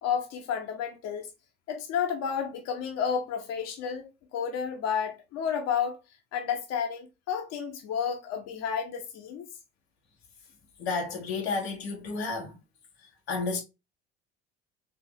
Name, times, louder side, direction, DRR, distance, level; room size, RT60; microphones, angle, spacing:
voice 1, 0.0-1.3 1.7-6.0 6.3-9.5, left 7 dB, 55° left, 1.0 m, -31 dB
voice 2, 10.8-12.6 13.3-13.6, left 4 dB, 85° left, 1.3 m, -31 dB
4.4 x 2.8 x 2.9 m
hypercardioid pair, 70°, 30 cm